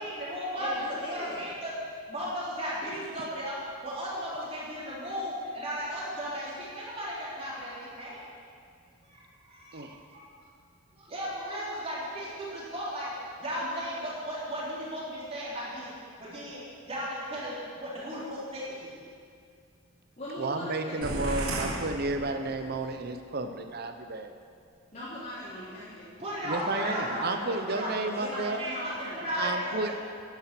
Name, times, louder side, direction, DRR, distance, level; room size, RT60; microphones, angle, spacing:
voice 1, 0.0-0.7 1.1-1.7 2.1-8.2 9.0-9.8 10.1-10.2 11.0-15.9 16.2-18.9 26.2-27.5 27.8-27.9 28.6-29.9, equal, 30° right, -7 dB, 3.6 m, -35 dB
voice 2, 0.6-1.5 13.5-14.3 20.2-21.7 24.9-26.1 26.4-29.2, equal, 35° left, -12 dB, 2.9 m, -40 dB
voice 3, 20.4-24.3 26.4-28.6 29.3-29.9, right 2 dB, 45° right, 7 dB, 0.7 m, -32 dB
sound 1, 21.0-22.9, right 2 dB, 80° right, 1.4 m, -34 dB
11.0 x 10.0 x 6.0 m, 2.2 s
head